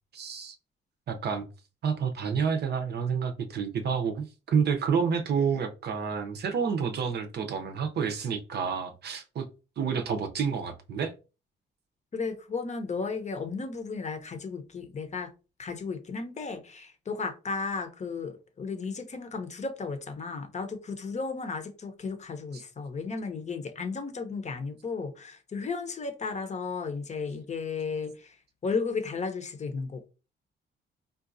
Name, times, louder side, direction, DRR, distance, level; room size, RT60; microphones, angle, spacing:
voice 1, 0.1-0.6 1.1-1.5 1.8-9.5 9.8-11.1 22.5-22.6, right 6 dB, 55° right, 0.6 m, -29 dB
voice 2, 12.1-15.3 15.6-28.3 28.6-30.1, left 4 dB, 35° left, 0.7 m, -34 dB
3.8 x 2.3 x 2.6 m
cardioid pair, 90°, 20 cm